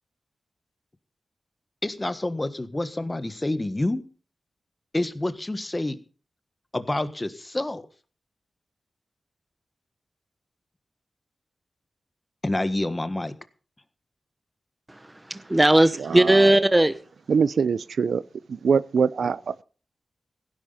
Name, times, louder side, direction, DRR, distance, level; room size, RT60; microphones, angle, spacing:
voice 1, 1.8-4.0 4.9-6.0 6.7-7.9 12.4-13.3, left 1 dB, 20° left, 1.4 m, -28 dB
voice 2, 14.9-17.0, right 1 dB, 15° right, 0.9 m, -19 dB
voice 3, 16.1-16.5 17.3-18.2 18.5-19.6, right 6 dB, 85° right, 0.6 m, -23 dB
16.5 x 10.5 x 5.6 m
wide cardioid pair, 110°, 0 cm